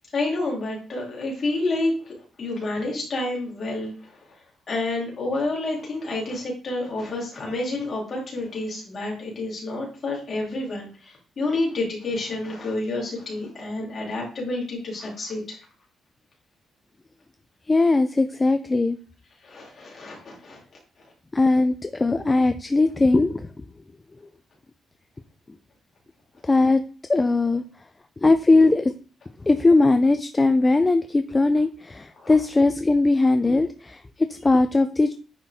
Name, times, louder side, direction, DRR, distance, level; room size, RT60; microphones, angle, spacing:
voice 1, 0.1-4.2 4.7-15.6 19.4-20.6 32.2-32.3, left 2 dB, 35° left, -3 dB, 2.8 m, -29 dB
voice 2, 17.7-19.0 21.3-23.5 26.4-26.8 27.1-27.6 28.2-28.9 29.4-35.1, left 2 dB, 15° left, 9 dB, 0.4 m, -20 dB
9.4 x 4.2 x 3.5 m, 0.38 s
cardioid pair, 165°, 0 cm